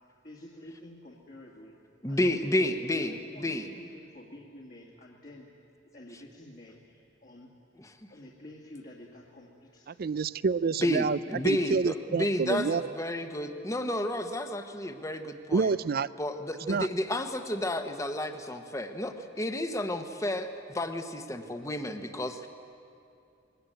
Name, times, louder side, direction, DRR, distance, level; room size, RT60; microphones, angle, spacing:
voice 1, 0.2-1.8 2.1-3.1 3.3-5.5 5.9-7.5 8.1-10.1, left 1 dB, 45° left, -3 dB, 2.1 m, -49 dB
voice 2, 2.0-3.6 10.8-15.7 16.2-22.5, left 1 dB, 15° left, 7 dB, 1.1 m, -31 dB
voice 3, 10.0-11.2 11.4-12.9 15.5-16.1 16.7-16.9, right 4 dB, 50° right, 18 dB, 0.4 m, -27 dB
21.5 x 18.5 x 9.1 m, 2.5 s
head